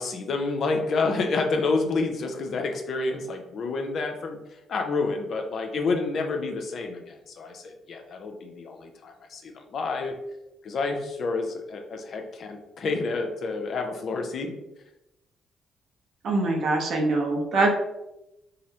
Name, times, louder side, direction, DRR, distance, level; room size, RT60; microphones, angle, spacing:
voice 1, 0.0-4.4 4.7-10.1 10.6-14.5, left 3 dB, 60° left, 3 dB, 0.5 m, -29 dB
voice 2, 16.2-17.7, right 2 dB, 65° right, 1 dB, 0.7 m, -23 dB
3.8 x 2.0 x 2.8 m, 0.90 s
cardioid pair, 90°, 0 cm